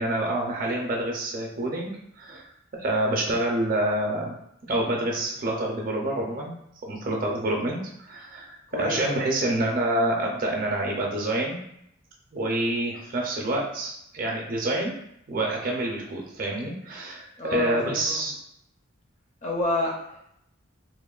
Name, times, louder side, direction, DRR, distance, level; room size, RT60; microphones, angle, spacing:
voice 1, 0.0-4.3 4.7-6.5 6.8-11.6 12.3-14.9 15.3-18.3, right 1 dB, 40° right, 0 dB, 0.4 m, -27 dB
voice 2, 8.7-9.2 17.4-18.2 19.4-20.4, left 2 dB, 35° left, -1 dB, 0.5 m, -30 dB
2.9 x 2.1 x 2.3 m, 0.76 s
head